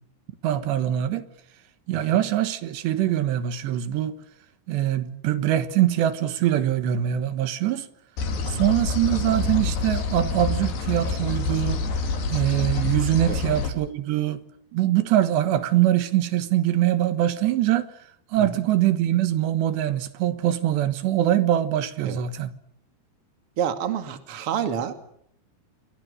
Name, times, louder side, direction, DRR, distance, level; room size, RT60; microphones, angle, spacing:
voice 1, 0.4-1.3 1.9-4.2 4.7-7.9 8.5-11.8 12.3-14.4 14.7-18.0 18.3-22.5, right 12 dB, 85° right, 3.6 m, -23 dB
sound 1, 8.2-13.7, left 4 dB, 75° left, 5.2 m, -27 dB
voice 2, 23.6-24.9, right 8 dB, 40° right, 2.6 m, -29 dB
28.5 x 24.5 x 6.5 m
omnidirectional pair, 4.9 m